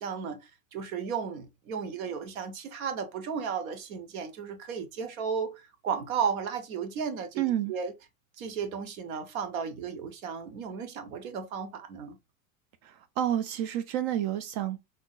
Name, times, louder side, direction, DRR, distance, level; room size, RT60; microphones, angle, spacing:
voice 1, 0.0-7.9 8.4-12.2, right 6 dB, 80° right, 0.9 m, -34 dB
voice 2, 7.4-7.7 12.8-14.8, right 11 dB, 55° right, 0.5 m, -29 dB
3.5 x 2.7 x 2.4 m
hypercardioid pair, 95°, 42 cm